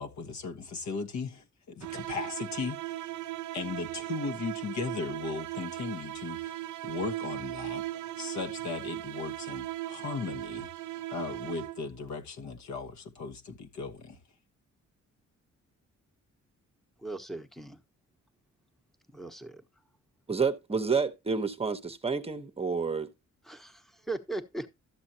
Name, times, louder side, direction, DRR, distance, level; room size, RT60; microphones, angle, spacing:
voice 1, 0.0-3.0 3.5-7.8 8.2-10.7 11.1-14.2, left 4 dB, 70° left, 1.4 m, -37 dB
sound 1, 1.8-12.0, right 15 dB, 85° right, 0.5 m, -38 dB
voice 2, 17.0-17.8 19.1-19.6 23.4-24.7, right 2 dB, ahead, 1.1 m, -38 dB
voice 3, 20.3-23.1, right 5 dB, 20° right, 0.9 m, -29 dB
13.0 x 7.7 x 2.8 m
wide cardioid pair, 155°, 29 cm